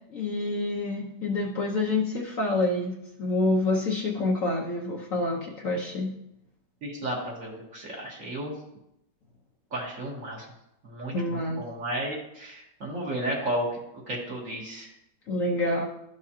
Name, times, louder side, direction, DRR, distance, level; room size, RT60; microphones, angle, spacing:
voice 1, 0.1-2.9 3.2-6.1 11.1-11.6 15.3-15.8, left 2 dB, 55° left, -2 dB, 1.1 m, -27 dB
voice 2, 6.8-8.5 9.7-10.5 10.8-13.7 14.1-14.9, right 1 dB, 50° right, -3 dB, 1.7 m, -33 dB
12.5 x 4.8 x 2.8 m, 0.82 s
omnidirectional pair, 1.9 m